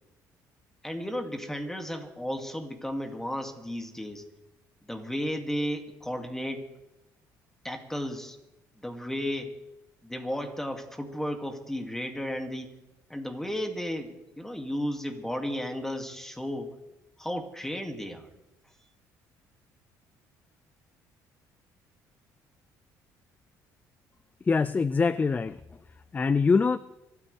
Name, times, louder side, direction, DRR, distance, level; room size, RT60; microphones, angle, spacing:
voice 1, 0.8-4.2 4.9-6.7 7.6-8.4 8.8-9.6 10.0-12.7 13.1-16.7 17.2-18.3, equal, 5° left, 4 dB, 2.4 m, -34 dB
voice 2, 24.5-25.6 26.1-26.8, left 4 dB, 20° left, 16 dB, 0.4 m, -23 dB
25.0 x 13.5 x 3.4 m, 0.96 s
cardioid pair, 95°, 7 cm